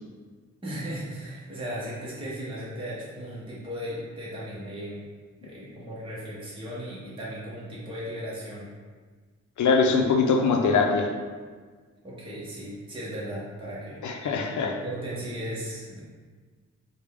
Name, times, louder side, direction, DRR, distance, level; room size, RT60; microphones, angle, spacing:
voice 1, 0.6-5.0 5.4-8.7 12.0-14.3 14.6-16.0, equal, 20° right, -7 dB, 0.7 m, -36 dB
voice 2, 9.6-11.1 14.0-14.7, left 4 dB, 85° left, 3 dB, 0.5 m, -22 dB
4.8 x 2.2 x 3.4 m, 1.5 s
wide cardioid pair, 175°, 29 cm